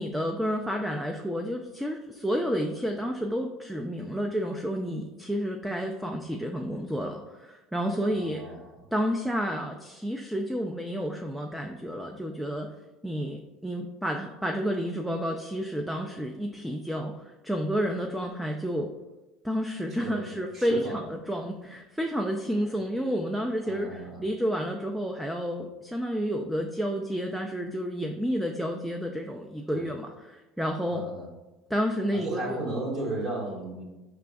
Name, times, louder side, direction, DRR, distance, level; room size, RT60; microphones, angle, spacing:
voice 1, 0.0-8.4 8.9-12.7 13.0-18.9 19.4-31.0 31.7-32.6, equal, 5° right, 2 dB, 0.3 m, -30 dB
voice 2, 8.1-8.8 19.9-21.0 23.6-24.2 29.7-29.9 30.9-31.3 32.1-33.8, right 2 dB, 45° right, -4 dB, 1.5 m, -35 dB
4.9 x 3.3 x 2.3 m, 1.0 s
supercardioid pair, 105°, 0 cm